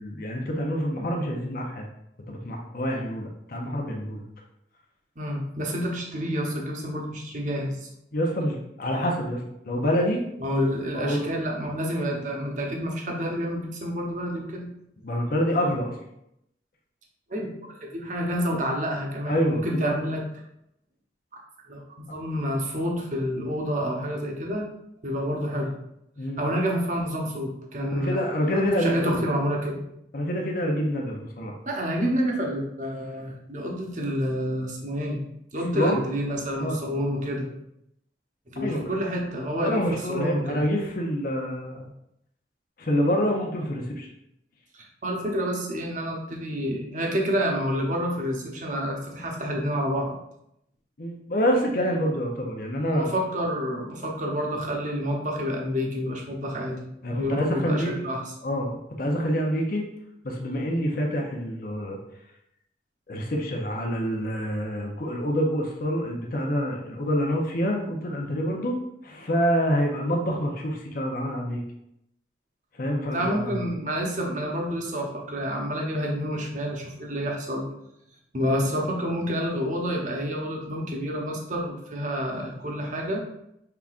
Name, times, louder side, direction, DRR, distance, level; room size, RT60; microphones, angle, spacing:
voice 1, 0.0-1.9 2.3-4.2 8.1-10.2 10.9-11.3 15.0-16.0 19.3-20.0 26.2-26.4 27.8-29.2 30.1-31.5 35.7-36.0 36.6-36.8 38.6-38.9 39.6-41.9 42.8-44.1 51.0-53.1 57.0-58.0 58.4-59.8 60.2-62.0 63.1-68.8 69.0-71.6 72.8-73.6, equal, 50° left, 0 dB, 0.7 m, -27 dB
voice 2, 5.2-7.9 10.4-14.7 17.3-20.2 21.7-24.7 25.0-25.7 26.4-29.8 31.7-35.2 35.5-37.5 38.5-40.6 44.7-50.1 52.9-56.8 57.1-58.3 73.1-77.7 78.3-83.2, equal, 45° right, 0 dB, 0.9 m, -28 dB
5.7 x 3.5 x 2.5 m, 0.80 s
head